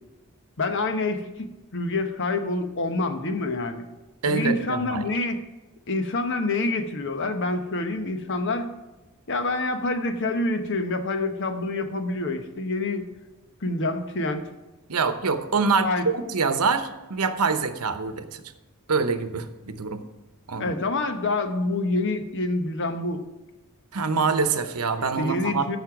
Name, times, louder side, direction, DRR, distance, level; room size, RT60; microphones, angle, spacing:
voice 1, 0.6-3.8 4.3-5.4 5.9-8.7 9.3-13.1 13.6-14.4 15.8-16.1 20.6-23.2 25.2-25.8, left 2 dB, 55° left, 7 dB, 1.0 m, -27 dB
voice 2, 4.2-5.0 14.9-18.4 18.9-20.0 20.5-20.8 23.9-25.8, right 4 dB, 80° right, 9 dB, 0.9 m, -25 dB
14.0 x 5.6 x 6.0 m, 1.1 s
head